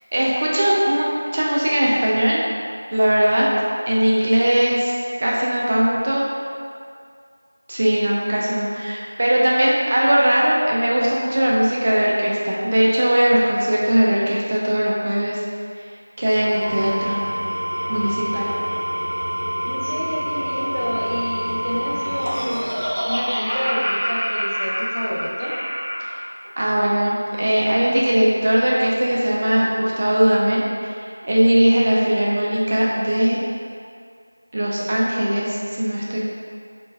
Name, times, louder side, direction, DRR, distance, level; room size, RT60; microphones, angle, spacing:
voice 1, 0.1-2.4 2.9-3.5 3.9-4.9 5.2-6.3 7.7-15.4 16.2-17.2 17.9-18.5 26.0-26.2 26.6-31.0 31.2-33.4 34.5-36.2, right 1 dB, 25° right, -5 dB, 0.3 m, -19 dB
Engine / Tools, 16.3-23.7, equal, 80° left, 1.1 m, -27 dB
voice 2, 19.7-22.6 23.0-25.6, equal, 60° left, -5 dB, 0.7 m, -28 dB
Laughter, 21.7-26.2, equal, 45° right, 0.8 m, -26 dB
3.1 x 2.2 x 3.2 m, 2.2 s
figure-of-eight pair, 175°, 0 cm